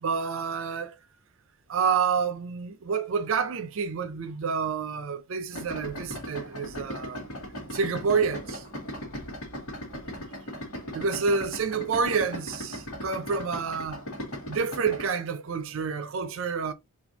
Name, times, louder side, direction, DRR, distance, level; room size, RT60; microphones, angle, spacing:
voice 1, 0.0-0.9 1.7-7.3 7.7-8.6 10.9-14.0 14.5-16.7, right 5 dB, 65° right, 0.5 m, -28 dB
Idling, 5.5-15.1, equal, 85° left, 1.4 m, -38 dB
4.2 x 2.5 x 2.7 m
head